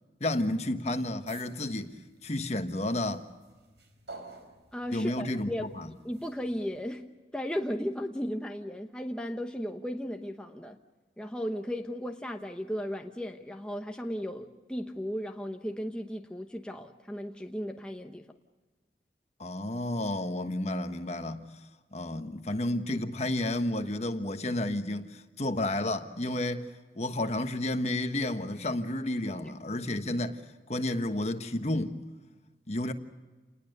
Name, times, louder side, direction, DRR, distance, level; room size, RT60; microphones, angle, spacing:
voice 1, 0.2-1.9 2.2-3.2 4.9-5.9 19.4-21.4 21.9-26.7 27.0-30.4 30.7-32.0 32.7-32.9, left 1 dB, 40° left, 1.3 m, -31 dB
sound 1, 1.3-6.8, right 3 dB, 85° right, 4.3 m, -52 dB
voice 2, 4.7-5.7 6.0-7.1 7.3-10.8 11.2-18.2 29.4-29.5, equal, 5° left, 0.9 m, -35 dB
29.0 x 20.0 x 6.7 m
head